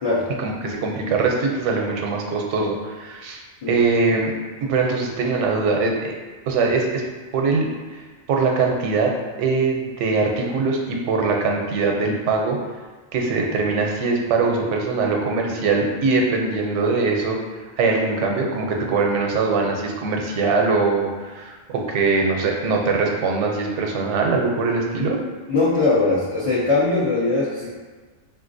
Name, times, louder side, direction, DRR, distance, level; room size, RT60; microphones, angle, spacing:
voice 1, 0.4-3.4 3.7-4.3 4.7-6.1 6.5-7.0 7.3-7.7 7.9-8.0 8.3-12.6 13.1-17.4 17.8-25.2, right 4 dB, 85° right, 1 dB, 0.9 m, -22 dB
voice 2, 25.5-27.7, left 3 dB, 55° left, -8 dB, 0.3 m, -20 dB
3.8 x 2.4 x 2.5 m, 1.4 s
omnidirectional pair, 1.2 m